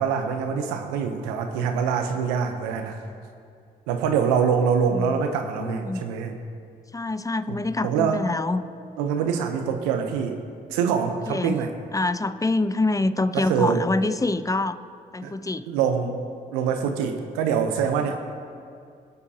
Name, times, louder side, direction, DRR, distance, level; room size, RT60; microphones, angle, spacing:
voice 1, 0.0-3.0 3.9-6.4 7.5-7.6 7.8-8.3 9.0-10.4 10.7-11.7 13.3-13.9 15.2-15.3 15.7-16.2 16.5-18.4, right 6 dB, 85° right, 6 dB, 0.9 m, -24 dB
voice 2, 5.6-6.1 6.9-8.6 11.3-11.6 11.9-14.8 15.1-15.7, left 2 dB, 15° left, 13 dB, 0.6 m, -25 dB
22.0 x 8.1 x 2.9 m, 2.3 s
hypercardioid pair, 50°, 21 cm